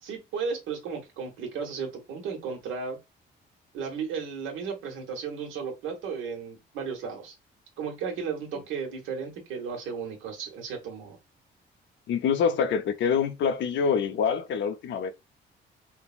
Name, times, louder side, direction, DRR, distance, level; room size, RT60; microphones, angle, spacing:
voice 1, 0.0-3.0 3.7-7.3 7.8-11.2, right 6 dB, 80° right, 1.1 m, -34 dB
voice 2, 12.1-15.1, left 6 dB, 70° left, 0.5 m, -25 dB
3.3 x 2.1 x 2.4 m
cardioid pair, 90°, 20 cm